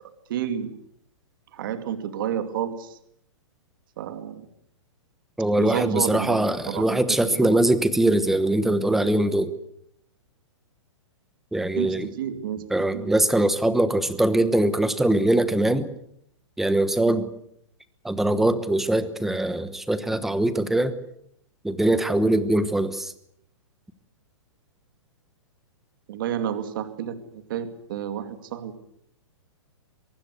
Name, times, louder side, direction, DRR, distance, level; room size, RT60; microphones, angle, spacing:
voice 1, 0.3-0.7 1.5-3.0 4.0-4.5 5.6-7.6 11.8-12.6 12.9-13.1 26.1-28.8, right 9 dB, 45° right, 9 dB, 2.5 m, -30 dB
voice 2, 5.4-9.5 11.5-12.1 12.7-15.9 16.6-17.3 18.0-20.9 21.6-23.1, right 1 dB, ahead, 13 dB, 1.1 m, -22 dB
23.5 x 22.5 x 8.2 m, 0.72 s
hypercardioid pair, 170°, 16 cm